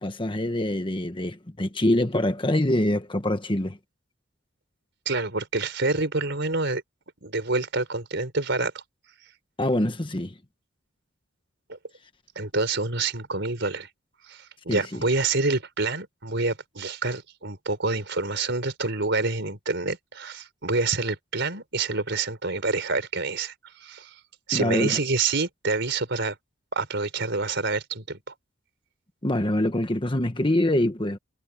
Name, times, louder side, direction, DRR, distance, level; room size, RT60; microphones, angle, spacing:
voice 1, 0.0-3.8 9.6-10.3 14.7-14.8 24.5-25.0 29.2-31.2, left 1 dB, 25° left, 1.4 m, -24 dB
voice 2, 5.0-6.8 7.2-8.7 11.7-11.8 12.3-13.9 14.3-23.5 23.8-24.1 24.5-26.4 26.7-28.3, right 3 dB, 60° right, 4.7 m, -27 dB
head